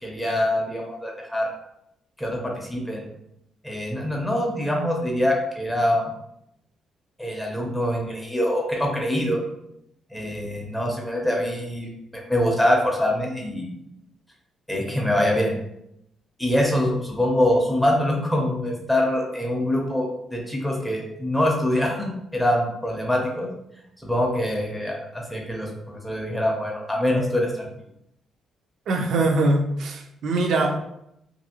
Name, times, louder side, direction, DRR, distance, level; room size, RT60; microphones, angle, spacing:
voice 1, 0.0-1.5 2.2-3.1 3.6-6.1 7.2-9.4 10.1-13.8 14.7-15.6 16.4-23.5 24.0-27.7, left 1 dB, 5° left, -1 dB, 0.6 m, -24 dB
voice 2, 28.9-30.8, right 2 dB, 65° right, 3 dB, 0.5 m, -22 dB
2.6 x 2.6 x 2.8 m, 0.80 s
cardioid pair, 145°, 0 cm